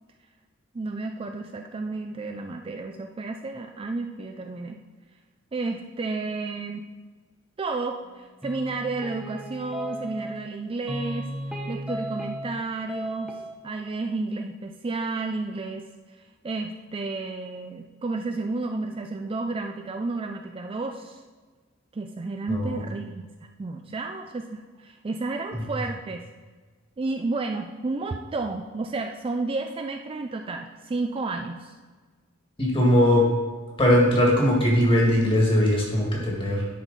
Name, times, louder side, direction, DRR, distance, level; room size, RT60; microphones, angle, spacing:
voice 1, 0.7-4.8 5.5-6.9 7.6-13.4 13.6-15.8 16.4-21.2 21.9-23.3 23.6-26.2 27.0-31.8, right 3 dB, 25° right, 4 dB, 0.3 m, -31 dB
sound 1, 8.4-10.5 10.9-12.6 12.9-13.5, equal, 5° right, 0.8 m, -35 dB
voice 2, 22.5-22.8 32.6-33.3 33.8-36.7, left 1 dB, 25° left, -2 dB, 1.9 m, -20 dB
10.5 x 4.5 x 4.0 m, 1.4 s
head